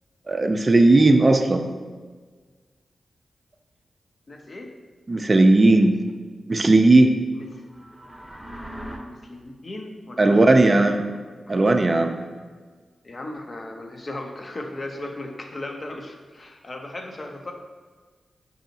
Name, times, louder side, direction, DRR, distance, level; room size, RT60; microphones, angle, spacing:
voice 1, 0.3-1.6 5.1-6.0 6.5-7.1 10.2-11.0 11.5-12.2, right 2 dB, 40° right, 5 dB, 0.3 m, -16 dB
voice 2, 4.3-4.7 7.3-7.6 8.9-11.2 11.5-11.7 13.0-17.5, left 2 dB, 45° left, 3 dB, 0.5 m, -37 dB
sound 1, 7.6-9.0, equal, 10° right, 0.7 m, -39 dB
4.8 x 2.7 x 2.7 m, 1.5 s
cardioid pair, 50°, 0 cm